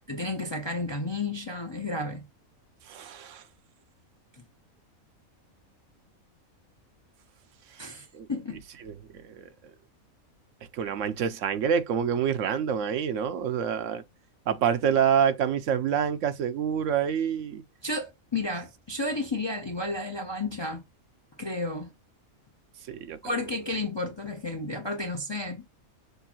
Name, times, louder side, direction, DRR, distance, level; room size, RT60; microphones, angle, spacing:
voice 1, 0.1-2.3 7.8-8.6 17.8-20.9 21.4-21.9 23.2-25.7, left 2 dB, 30° left, 0.5 m, -32 dB
voice 2, 2.9-3.4 8.1-8.3 8.8-9.5 10.7-14.0 14.5-17.6 22.9-23.2, right 8 dB, 70° right, 0.9 m, -27 dB
6.6 x 2.6 x 2.9 m
omnidirectional pair, 1.4 m